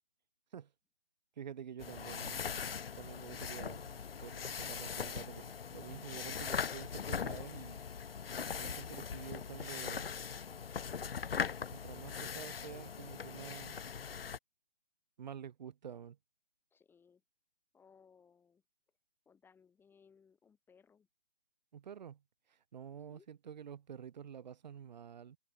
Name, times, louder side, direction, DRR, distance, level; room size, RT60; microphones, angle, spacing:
voice 1, 1.4-2.7 3.0-7.8 8.5-10.1 11.7-13.8 15.2-16.2 21.7-22.2 22.5-25.4, right 8 dB, 45° right, 7.2 m, -49 dB
sound 1, 1.8-14.4, left 6 dB, 70° left, 0.8 m, -40 dB
voice 2, 16.7-17.2 17.7-18.6 19.3-21.1 23.0-23.3, left 6 dB, 5° left, 5.6 m, -65 dB
figure-of-eight pair, 150°, 30 cm